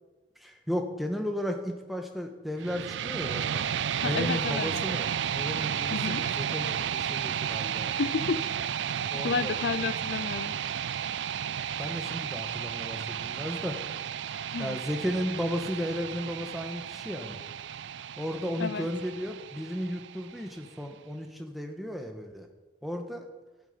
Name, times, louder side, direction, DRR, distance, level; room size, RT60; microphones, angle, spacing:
voice 1, 0.4-3.7 4.0-7.9 9.1-9.6 11.8-13.8 14.6-17.4 18.2-22.5 22.8-23.3, equal, ahead, 3 dB, 1.3 m, -34 dB
sound 1, 2.6-20.6, right 8 dB, 75° right, 0.4 m, -33 dB
voice 2, 4.0-4.7 5.9-6.2 7.9-8.4 9.2-10.6 14.5-14.8 18.6-18.9, left 5 dB, 70° left, 15 dB, 0.5 m, -31 dB
12.0 x 8.8 x 9.3 m, 1.2 s
head